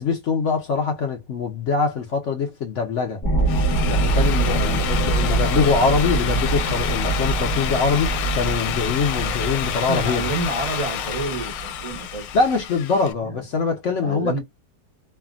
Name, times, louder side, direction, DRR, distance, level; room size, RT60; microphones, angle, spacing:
voice 1, 0.0-3.2 3.9-10.3 12.3-14.4, left 5 dB, 60° left, 0.8 m, -23 dB
sound 1, 3.2-12.4, right 2 dB, 5° left, 1.1 m, -24 dB
Drill, 3.3-13.1, left 10 dB, 90° left, 1.3 m, -29 dB
voice 2, 4.4-5.7 9.9-12.3 14.0-14.4, right 2 dB, 65° right, 0.3 m, -29 dB
3.3 x 2.2 x 2.3 m
omnidirectional pair, 1.9 m